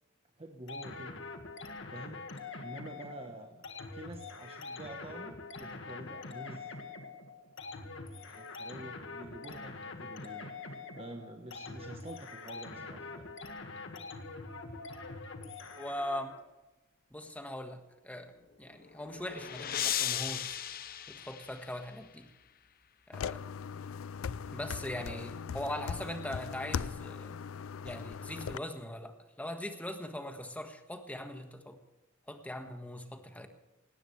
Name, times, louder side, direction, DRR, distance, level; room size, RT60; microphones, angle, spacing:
voice 1, 0.4-1.1 1.9-2.3 2.6-3.7 3.9-6.7 8.3-13.3 25.0-25.2, right 1 dB, 30° right, 3 dB, 1.2 m, -48 dB
sound 1, 0.7-16.4, left 3 dB, 65° left, 1.8 m, -44 dB
voice 2, 15.8-16.3 17.1-18.3 18.6-20.6 21.1-22.3 23.1-23.4 24.5-27.4 27.8-31.8 32.3-33.5, left 1 dB, 5° left, 5 dB, 1.6 m, -41 dB
sound 2, 18.7-22.1, left 10 dB, 45° left, 0.7 m, -36 dB
sound 3, 23.1-28.6, left 6 dB, 90° left, 0.4 m, -39 dB
18.0 x 18.0 x 3.3 m, 1.1 s
head